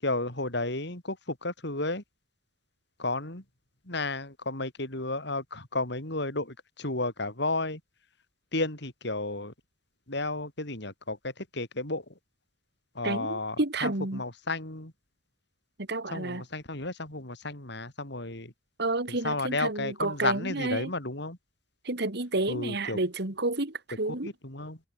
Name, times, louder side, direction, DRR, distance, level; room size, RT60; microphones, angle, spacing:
voice 1, 0.0-2.0 3.0-3.4 3.8-7.8 8.5-9.5 10.1-12.2 12.9-14.9 16.1-18.5 19.1-21.4 22.5-23.0 24.1-24.8, left 2 dB, 65° left, 5.7 m, -33 dB
voice 2, 13.0-14.2 15.9-16.4 18.8-20.9 21.8-24.3, right 2 dB, 60° right, 2.4 m, -30 dB
head